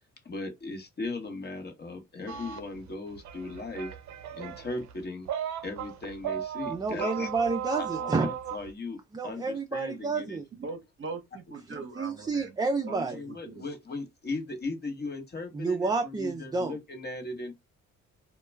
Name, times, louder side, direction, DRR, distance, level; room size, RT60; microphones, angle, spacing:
voice 1, 0.2-3.9 4.3-5.3 5.6-7.3 7.7-9.0 9.2-10.4 12.9-17.5, left 3 dB, 35° left, 1.0 m, -37 dB
sound 1, 2.3-8.7, right 9 dB, 65° right, 0.5 m, -36 dB
voice 2, 6.7-8.3 9.1-10.4 11.7-13.2 15.5-16.8, right 4 dB, 15° right, 0.4 m, -30 dB
voice 3, 10.6-12.5 12.8-12.9 13.3-13.7, right 4 dB, 40° right, 0.8 m, -40 dB
2.2 x 2.1 x 3.1 m
cardioid pair, 90°, 30 cm